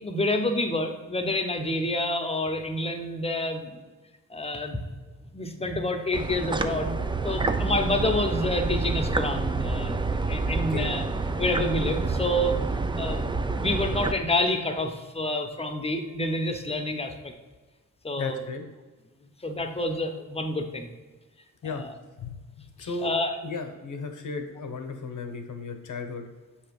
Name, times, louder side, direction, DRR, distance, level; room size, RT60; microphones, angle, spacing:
voice 1, 0.0-3.7 4.3-4.8 5.3-6.9 7.2-10.0 10.3-11.0 11.4-12.6 12.9-17.3 18.0-18.4 19.4-20.9 21.6-21.9 22.8-23.4, left 1 dB, 20° left, 5 dB, 0.9 m, -28 dB
sound 1, 6.1-14.1, right 3 dB, 15° right, 0.4 m, -28 dB
voice 2, 10.6-10.9 18.2-18.7 21.6-21.8 22.2-23.1 23.4-26.2, left 4 dB, 65° left, 6 dB, 0.9 m, -35 dB
7.1 x 3.0 x 5.1 m, 1.3 s
cardioid pair, 60°, 33 cm